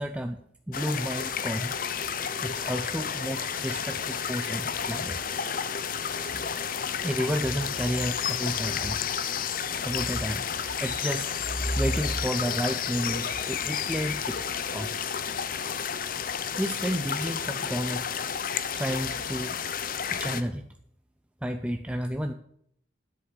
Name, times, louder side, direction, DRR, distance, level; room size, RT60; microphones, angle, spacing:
voice 1, 0.0-1.8 2.4-5.2 6.3-6.4 7.0-9.0 9.8-10.5 10.8-14.9 16.6-18.1 18.8-19.6 20.1-20.7 21.4-22.3, equal, 5° right, 6 dB, 0.5 m, -31 dB
sound 1, 0.7-20.4, left 7 dB, 50° left, 0.7 m, -31 dB
Chink clink, 3.3-8.5, left 4 dB, 70° right, 2.7 m, -57 dB
10.0 x 8.0 x 6.7 m, 0.67 s
head